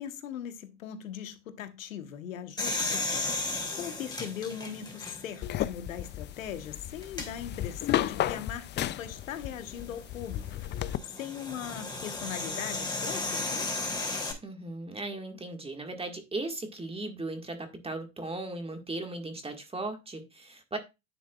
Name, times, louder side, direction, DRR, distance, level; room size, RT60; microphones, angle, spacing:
voice 1, 0.0-10.9 11.2-13.8, left 9 dB, 85° left, 1.2 m, -40 dB
sound 1, 2.6-5.5 6.0-6.1 7.0-7.3 9.4-14.3, left 3 dB, 10° left, 2.9 m, -34 dB
sound 2, 5.4-11.0, left 12 dB, 30° left, 0.4 m, -33 dB
voice 2, 14.4-20.8, right 2 dB, 15° right, 1.7 m, -37 dB
10.0 x 7.1 x 2.4 m
hypercardioid pair, 85°, 39 cm